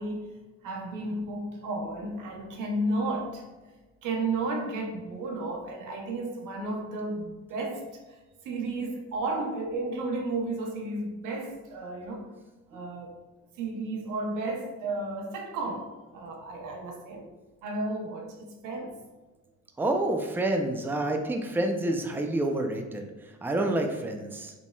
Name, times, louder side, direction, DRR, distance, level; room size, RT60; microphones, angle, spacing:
voice 1, 0.0-3.4 4.0-8.2 8.4-12.3 12.7-13.1 13.6-17.3 17.6-19.0, right 2 dB, 90° right, 0.8 m, -33 dB
voice 2, 19.8-24.5, right 1 dB, 5° right, 0.4 m, -28 dB
5.0 x 3.4 x 2.2 m
cardioid pair, 90°, 30 cm